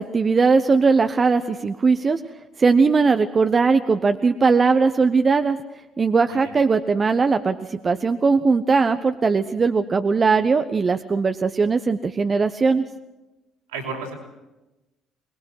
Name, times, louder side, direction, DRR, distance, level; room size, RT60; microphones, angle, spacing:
voice 1, 0.0-2.2 2.6-5.6 6.0-12.8, right 4 dB, 35° right, 9 dB, 1.1 m, -19 dB
voice 2, 13.7-14.1, right 4 dB, 80° right, 0 dB, 5.3 m, -32 dB
24.5 x 21.0 x 6.3 m, 1.0 s
figure-of-eight pair, 50°, 0 cm